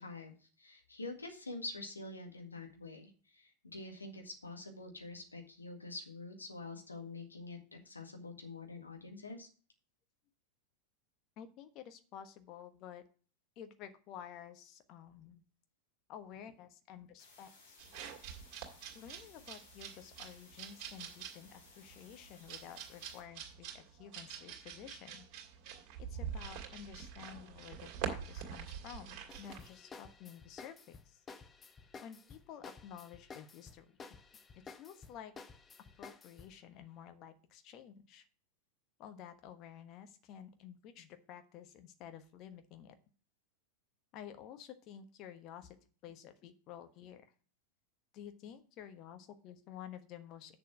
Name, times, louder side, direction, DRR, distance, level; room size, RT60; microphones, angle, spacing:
voice 1, 0.0-9.5, left 3 dB, 80° left, 3 dB, 2.0 m, -46 dB
voice 2, 11.4-13.0 13.6-15.4 16.1-17.8 18.9-25.3 26.0-31.2 32.0-34.0 34.7-35.3 36.0-38.3 39.0-42.9 44.1-45.8 46.0-47.3 48.1-50.6, left 9 dB, 35° left, 9 dB, 1.2 m, -51 dB
sound 1, 17.2-23.2, left 3 dB, 60° left, 3.5 m, -61 dB
sound 2, 17.8-29.7, right 8 dB, 40° right, 2.5 m, -45 dB
sound 3, 29.3-36.6, left 5 dB, 20° left, 0.8 m, -53 dB
7.5 x 6.9 x 6.1 m, 0.40 s
figure-of-eight pair, 90°, 0 cm